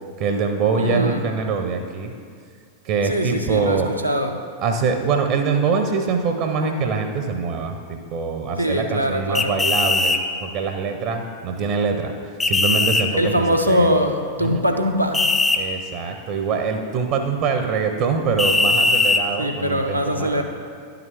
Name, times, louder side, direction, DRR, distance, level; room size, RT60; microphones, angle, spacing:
voice 1, 0.2-2.1 2.8-3.9 4.6-12.1 12.4-13.3 13.7-13.9 14.4-14.6 15.6-20.4, right 5 dB, 45° right, 5 dB, 0.6 m, -24 dB
voice 2, 0.8-1.2 3.1-4.4 8.6-9.6 13.1-15.3 19.4-20.4, equal, 90° right, 3 dB, 0.6 m, -22 dB
sound 1, 9.3-10.2 12.4-13.0 15.1-15.6 18.4-19.2, left 3 dB, 10° left, 0.5 m, -19 dB
10.5 x 5.8 x 3.4 m, 2.1 s
figure-of-eight pair, 90°, 0 cm